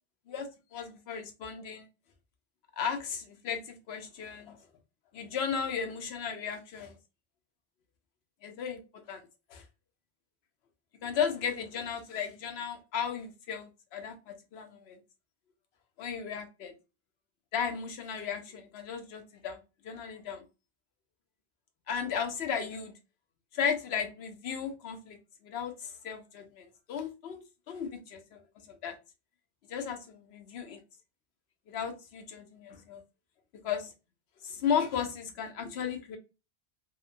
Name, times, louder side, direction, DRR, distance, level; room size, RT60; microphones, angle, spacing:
voice 1, 0.3-1.8 2.8-4.5 5.1-6.9 8.4-8.8 9.1-9.2 9.5-9.6 11.0-15.0 16.0-16.7 17.5-19.6 19.8-20.4 21.9-22.9 23.5-25.2 25.4-25.7 26.0-28.4 28.8-28.9 29.7-30.8 31.7-33.0 33.6-33.9 34.4-36.2, left 7 dB, 75° left, 0.9 m, -35 dB
2.7 x 2.1 x 2.5 m
omnidirectional pair, 1.1 m